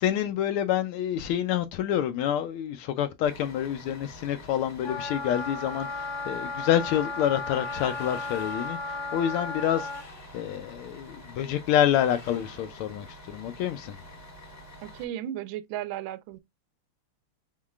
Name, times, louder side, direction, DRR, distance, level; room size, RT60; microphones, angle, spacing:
voice 1, 0.0-9.9 10.3-14.0, left 10 dB, 80° left, 1.4 m, -27 dB
Bus, 3.2-15.0, equal, 10° left, 0.8 m, -48 dB
Wind instrument woodwind instrument, 4.8-10.0, left 3 dB, 55° left, 1.7 m, -34 dB
sound 1, 7.4-8.9 9.5-10.5 11.9-12.8, left 3 dB, 30° left, 1.5 m, -50 dB
voice 2, 14.8-16.4, right 12 dB, 75° right, 1.3 m, -35 dB
5.4 x 3.6 x 2.3 m
omnidirectional pair, 2.4 m